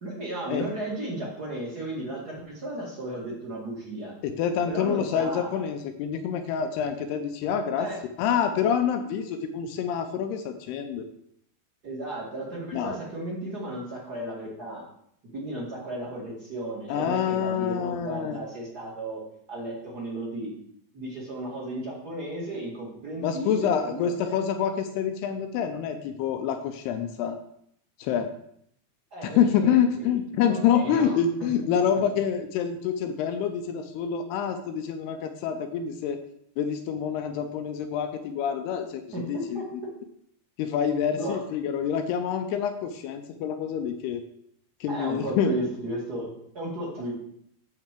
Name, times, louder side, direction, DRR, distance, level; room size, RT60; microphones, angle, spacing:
voice 1, 0.0-4.1 4.7-5.6 7.8-8.0 11.8-14.8 15.3-19.2 19.5-20.5 20.9-24.3 29.1-29.8 30.4-31.1 31.4-31.5 31.9-32.0 39.1-39.6 41.2-41.4 44.9-47.1, right 1 dB, 40° right, -4 dB, 1.5 m, -34 dB
voice 2, 4.2-7.9 8.2-11.1 12.7-13.0 16.9-18.4 23.2-27.4 28.0-28.3 29.2-36.2 36.6-39.6 40.6-44.2 44.8-45.5, left 8 dB, 80° left, 7 dB, 2.6 m, -27 dB
9.7 x 4.1 x 7.4 m, 0.70 s
omnidirectional pair, 5.1 m